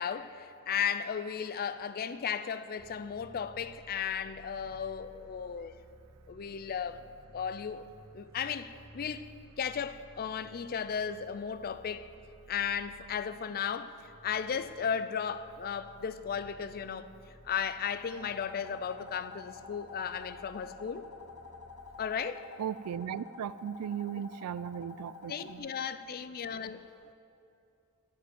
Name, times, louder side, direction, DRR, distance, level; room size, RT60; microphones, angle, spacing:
voice 1, 0.0-5.7 6.3-7.0 7.3-7.9 8.1-9.3 9.6-12.1 12.5-17.1 17.4-21.1 22.0-22.5 25.3-26.9, left 7 dB, 40° left, 0.4 m, -35 dB
sound 1, 2.8-22.3, right 1 dB, 25° right, 0.8 m, -57 dB
sound 2, 18.1-25.6, left 5 dB, 75° left, 0.8 m, -49 dB
voice 2, 22.6-25.7, right 9 dB, 80° right, 0.3 m, -37 dB
14.5 x 5.4 x 8.0 m
head